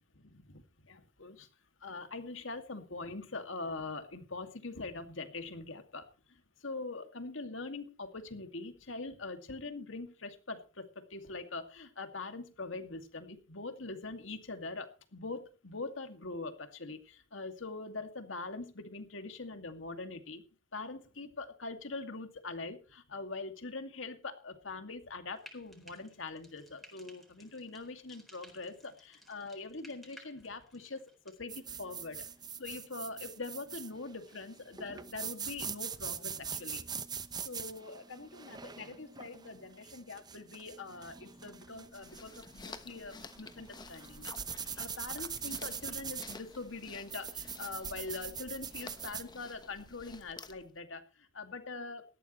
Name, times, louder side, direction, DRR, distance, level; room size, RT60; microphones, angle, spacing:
voice 1, 0.1-1.5 1.8-20.4 20.7-32.2 32.6-36.8 37.4-52.0, left 3 dB, 75° left, 7 dB, 2.4 m, -43 dB
Frying (food), 25.3-31.4, equal, ahead, 4.1 m, -58 dB
sound 1, 31.5-49.3, right 7 dB, 20° right, 0.8 m, -43 dB
sound 2, 41.7-50.8, left 3 dB, 20° left, 1.2 m, -51 dB
18.5 x 13.5 x 3.2 m, 0.34 s
head